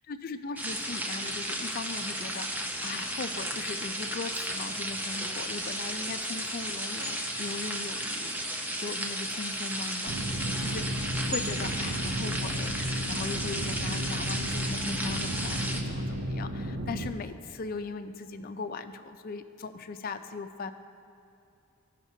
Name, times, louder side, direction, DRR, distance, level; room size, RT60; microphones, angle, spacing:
voice 1, 0.0-8.4 8.8-20.7, left 4 dB, 40° left, 9 dB, 0.4 m, -39 dB
sound 1, 0.6-15.8, right 1 dB, 10° right, 0.5 m, -34 dB
sound 2, 10.1-17.1, right 1 dB, 50° right, 0.6 m, -33 dB
16.0 x 5.8 x 2.7 m, 2.6 s
head